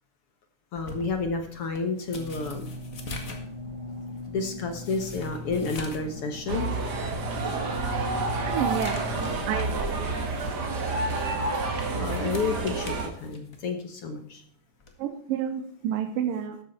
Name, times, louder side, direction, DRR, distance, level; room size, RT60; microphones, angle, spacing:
voice 1, 0.7-2.7 4.3-6.7 11.9-14.4, left 4 dB, 60° left, 6 dB, 1.6 m, -30 dB
sound 1, 0.7-6.1 6.5-6.6 7.2-7.3 7.7-9.9 10.3-10.5 11.7-13.7 14.8-15.0, left 3 dB, 40° left, 1.3 m, -44 dB
sound 2, 2.1-9.4, left 1 dB, 5° right, 3.6 m, -39 dB
sound 3, 6.5-13.1, right 3 dB, 40° right, 1.7 m, -29 dB
voice 2, 8.5-9.1 9.5-10.0 15.0-16.6, right 9 dB, 80° right, 6 dB, 2.7 m, -30 dB
13.0 x 8.3 x 4.4 m, 0.62 s
omnidirectional pair, 3.9 m